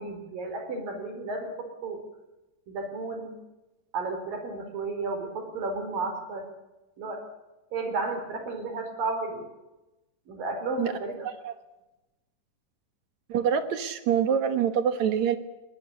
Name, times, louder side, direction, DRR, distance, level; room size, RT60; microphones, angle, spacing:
voice 1, 0.0-2.0 2.7-3.4 3.9-6.5 7.0-7.2 7.7-9.5 10.3-11.3, right 3 dB, 85° right, 6 dB, 6.0 m, -33 dB
voice 2, 13.3-15.4, right 8 dB, 60° right, 10 dB, 2.5 m, -25 dB
20.0 x 19.5 x 8.5 m, 1.0 s
omnidirectional pair, 3.9 m